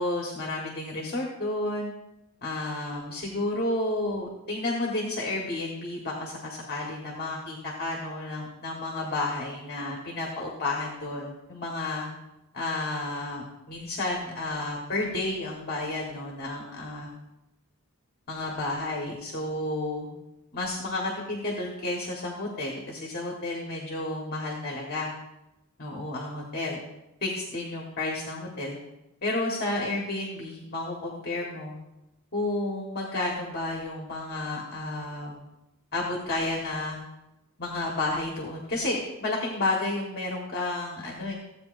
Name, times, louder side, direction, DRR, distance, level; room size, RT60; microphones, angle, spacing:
voice 1, 0.0-1.9 2.4-12.1 12.5-17.1 18.3-20.1 20.5-25.1 25.8-26.8 27.2-28.8 29.2-31.8 32.3-35.4 35.9-37.0 37.6-41.3, left 2 dB, 45° left, -1 dB, 1.4 m, -31 dB
15.0 x 8.2 x 2.6 m, 0.94 s
head